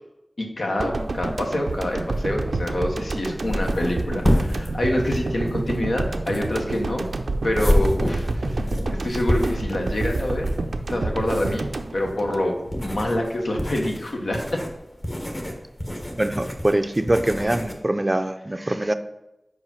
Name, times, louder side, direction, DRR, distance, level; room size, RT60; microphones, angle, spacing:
voice 1, 0.4-7.1 7.4-8.6 8.9-10.5 10.9-14.6, left 1 dB, 80° left, 1 dB, 1.1 m, -26 dB
sound 1, 0.8-13.0 13.3-13.4, right 2 dB, 90° right, 0.4 m, -29 dB
sound 2, 1.0-17.7, equal, 30° left, 1.1 m, -28 dB
voice 2, 16.2-18.9, right 1 dB, 30° right, 10 dB, 0.4 m, -23 dB
4.9 x 4.9 x 5.7 m, 0.93 s
wide cardioid pair, 60°, 0 cm